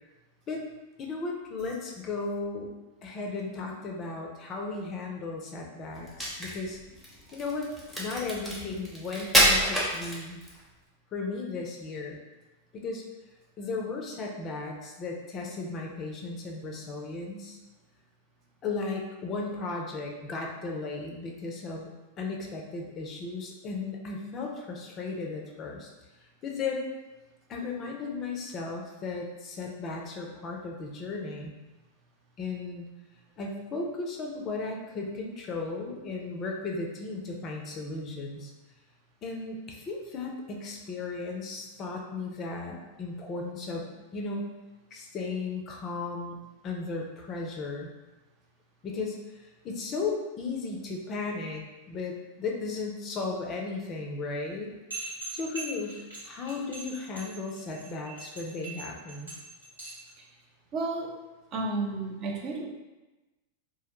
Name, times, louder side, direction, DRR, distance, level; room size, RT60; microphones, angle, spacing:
voice 1, 1.0-2.7 3.0-6.8 7.3-7.7 8.0-10.4 11.1-12.2 12.7-13.0 13.6-17.6 18.6-21.9 22.2-25.9 26.4-26.8 27.5-31.6 32.4-32.8 33.4-38.5 39.2-44.5 44.9-46.4 46.6-47.9 48.8-54.7 55.3-59.3, left 3 dB, 30° left, 1 dB, 0.4 m, -35 dB
Crack, 6.0-10.6, equal, ahead, 0.7 m, -27 dB
sound 1, 54.9-60.1, right 3 dB, 85° right, 1.2 m, -41 dB
voice 2, 60.7-61.1 61.5-62.7, right 3 dB, 35° right, -1 dB, 0.4 m, -32 dB
2.2 x 2.0 x 3.0 m, 1.1 s
figure-of-eight pair, 90°, 0 cm